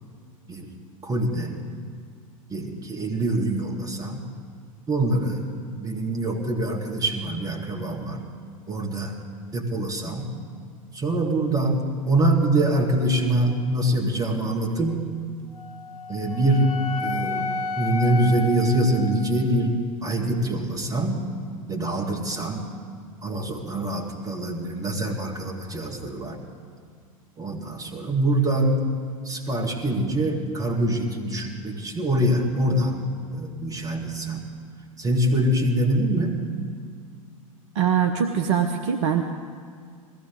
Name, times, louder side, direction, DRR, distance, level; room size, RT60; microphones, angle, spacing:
voice 1, 1.0-1.6 2.5-4.2 4.9-5.4 5.8-8.2 8.7-9.2 9.5-10.3 10.9-15.0 16.1-16.7 17.0-21.2 21.7-22.6 23.2-26.4 27.4-28.8 29.2-33.0 33.3-34.5 35.0-36.4, right 1 dB, 20° right, 0 dB, 2.4 m, -24 dB
Wind instrument woodwind instrument, 15.5-19.8, left 3 dB, 85° left, 0.7 m, -32 dB
voice 2, 37.7-39.2, right 8 dB, 55° right, 5 dB, 0.9 m, -22 dB
21.0 x 16.0 x 4.0 m, 2.1 s
figure-of-eight pair, 85°, 18 cm